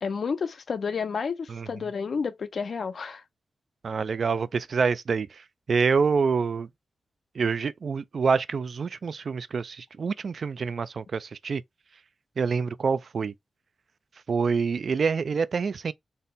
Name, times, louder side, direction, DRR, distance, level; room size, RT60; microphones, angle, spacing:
voice 1, 0.0-3.2, left 5 dB, 70° left, 0.6 m, -30 dB
voice 2, 3.8-5.4 5.7-6.7 7.4-11.6 12.4-13.3 14.3-15.9, right 5 dB, 60° right, 0.3 m, -26 dB
4.1 x 2.1 x 3.6 m
wide cardioid pair, 100°, 0 cm